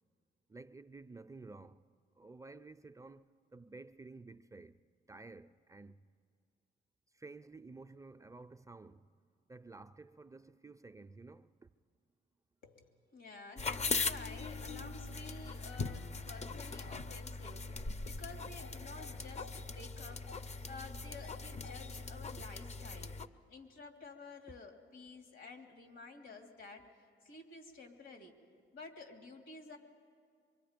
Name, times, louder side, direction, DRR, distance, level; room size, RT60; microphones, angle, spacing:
voice 1, 0.5-1.8 2.2-3.3 3.5-4.8 5.1-6.0 7.1-9.1 9.5-11.7, right 3 dB, 15° right, 0.5 m, -52 dB
voice 2, 12.6-23.2 23.5-28.4 28.7-29.8, left 3 dB, 75° left, 2.6 m, -52 dB
sound 1, 13.6-23.3, left 4 dB, 35° left, 0.6 m, -40 dB
24.0 x 23.5 x 5.1 m
cardioid pair, 90°, 20 cm